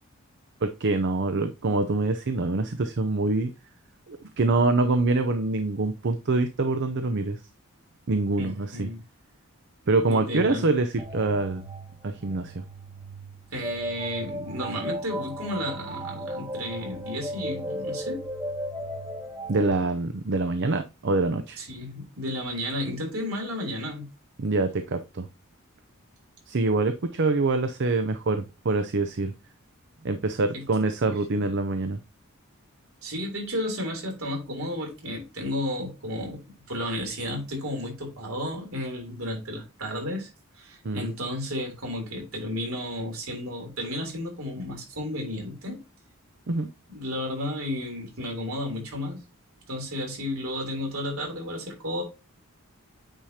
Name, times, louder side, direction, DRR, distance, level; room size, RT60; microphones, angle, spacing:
voice 1, 0.6-3.5 4.1-7.4 8.1-8.9 9.9-11.6 12.0-12.6 19.5-21.6 24.4-25.3 26.5-29.3 30.0-32.0 40.8-41.1 46.5-46.7, right 3 dB, 55° right, 0.6 m, -25 dB
voice 2, 8.4-9.0 10.1-10.7 13.5-18.2 21.6-24.1 30.5-30.6 33.0-36.4 36.7-40.3 40.6-45.8 46.9-49.2 49.7-52.0, left 1 dB, 70° right, 3.3 m, -32 dB
sound 1, 11.0-19.7, equal, 15° right, 1.7 m, -36 dB
8.9 x 4.9 x 2.8 m
head